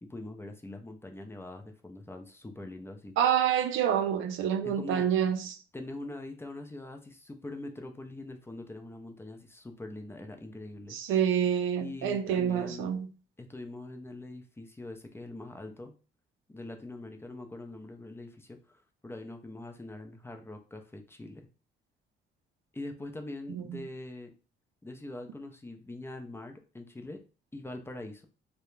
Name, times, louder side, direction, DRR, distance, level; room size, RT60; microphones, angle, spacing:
voice 1, 0.0-3.1 4.6-5.1 5.7-11.0 11.8-12.9 13.4-15.9 16.5-21.5 22.7-24.3 24.8-27.2 27.5-28.3, left 2 dB, 10° left, 0.4 m, -43 dB
voice 2, 3.2-5.6 10.9-13.1 23.5-23.8, right 9 dB, 80° right, 0.4 m, -27 dB
2.3 x 2.1 x 3.0 m
cardioid pair, 90°, 20 cm